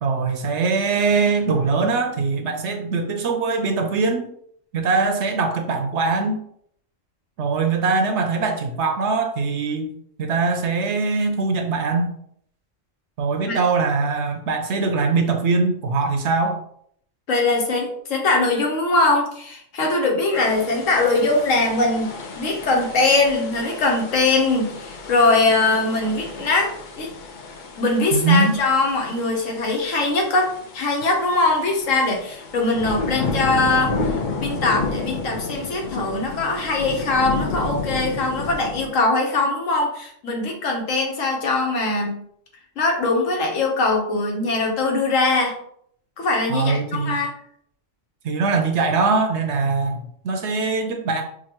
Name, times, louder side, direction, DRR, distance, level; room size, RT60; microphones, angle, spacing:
voice 1, 0.0-4.3 4.7-6.4 7.4-9.9 10.2-12.1 13.2-16.6 28.1-28.6 46.5-47.2 48.2-51.2, right 4 dB, 70° right, 5 dB, 0.8 m, -22 dB
voice 2, 17.3-22.1 22.4-26.7 27.0-27.1 27.8-30.5 30.7-42.1 42.8-45.5 46.2-47.3, left 3 dB, 90° left, 1 dB, 1.4 m, -21 dB
sound 1, 20.3-38.9, left 3 dB, 50° left, 0.6 m, -32 dB
5.9 x 2.4 x 2.9 m, 0.66 s
omnidirectional pair, 1.3 m